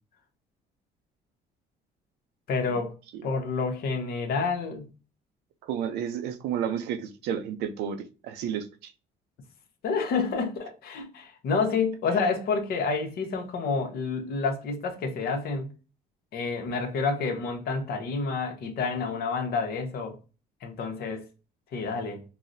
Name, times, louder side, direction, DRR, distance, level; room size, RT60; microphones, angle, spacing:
voice 1, 2.5-2.9 3.2-4.9 9.8-15.7 16.3-20.1 20.6-21.3 21.7-22.2, left 4 dB, 65° left, 0.8 m, -29 dB
voice 2, 5.6-8.9, right 8 dB, 80° right, 0.5 m, -32 dB
3.9 x 2.1 x 2.5 m
cardioid pair, 110°, 17 cm